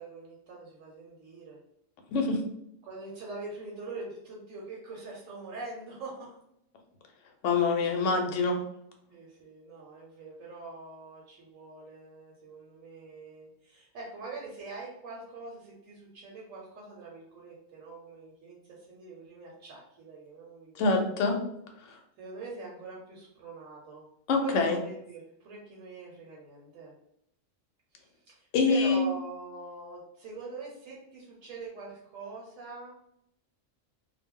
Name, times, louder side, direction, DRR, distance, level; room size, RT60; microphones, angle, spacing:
voice 1, 0.0-1.6 2.8-6.4 7.5-7.8 9.1-21.1 21.9-24.1 24.4-26.9 27.9-32.9, right 3 dB, 80° right, -3 dB, 1.0 m, -44 dB
voice 2, 2.1-2.4 7.4-8.6 20.7-21.4 21.9-22.0 24.3-24.8 28.5-29.0, left 4 dB, 75° left, 3 dB, 0.9 m, -25 dB
2.3 x 2.1 x 3.5 m, 0.77 s
omnidirectional pair, 1.3 m